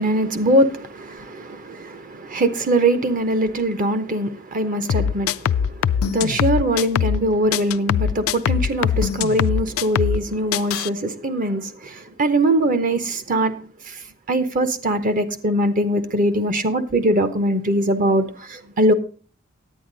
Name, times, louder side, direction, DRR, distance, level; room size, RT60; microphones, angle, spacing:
voice 1, 0.0-13.5 13.9-14.0 14.3-18.9, right 1 dB, 40° right, 0.8 m, -22 dB
sound 1, 4.9-7.2 7.5-10.2 10.5-10.9, left 8 dB, 80° left, 0.3 m, -22 dB
10.0 x 8.9 x 3.9 m
head